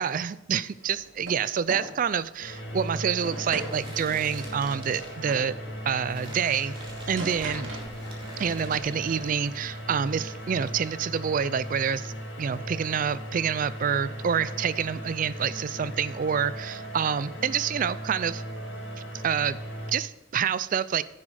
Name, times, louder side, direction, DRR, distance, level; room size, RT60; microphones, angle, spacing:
voice 1, 0.0-5.6 5.9-6.8 7.1-7.7 8.4-12.1 12.4-18.4 19.2-19.6 19.9-21.0, right 7 dB, 45° right, 17 dB, 0.4 m, -27 dB
sound 1, 0.8-1.4 1.7-2.0 2.5-2.7 3.2-5.5 6.8-8.3 8.6-9.3, right 2 dB, 75° right, 2.7 m, -40 dB
sound 2, 2.2-9.8 10.1-10.7, right 1 dB, 25° right, 2.2 m, -46 dB
sound 3, 2.4-19.9, equal, 75° left, 2.0 m, -38 dB
10.5 x 7.5 x 4.8 m, 0.93 s
head